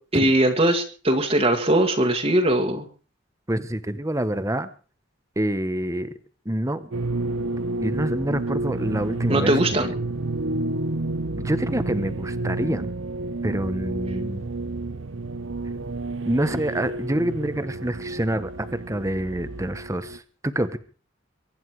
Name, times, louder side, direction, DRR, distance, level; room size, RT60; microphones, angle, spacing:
voice 1, 0.1-2.8 9.3-9.9, right 1 dB, 30° right, 1 dB, 1.8 m, -20 dB
voice 2, 3.5-4.7 5.4-6.1 6.4-6.9 7.8-9.9 11.4-12.9 13.4-14.5 16.2-20.8, right 1 dB, 15° right, 11 dB, 1.1 m, -27 dB
sound 1, 6.9-20.2, right 2 dB, 75° right, 0.8 m, -30 dB
23.5 x 10.5 x 4.8 m, 0.39 s
head